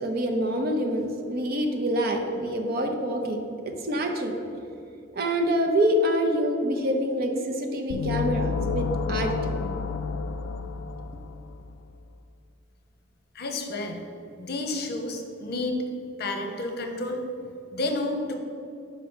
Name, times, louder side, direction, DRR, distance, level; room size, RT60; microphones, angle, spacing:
voice 1, 0.0-3.4 3.6-4.4 5.1-9.6, equal, 55° right, 3 dB, 0.8 m, -26 dB
sound 1, 7.9-11.7, left 5 dB, 80° left, 0.3 m, -30 dB
voice 2, 13.3-14.1 14.4-15.8 16.2-17.2 17.7-18.3, left 2 dB, 55° left, 4 dB, 0.8 m, -30 dB
5.3 x 5.0 x 6.1 m, 2.6 s
head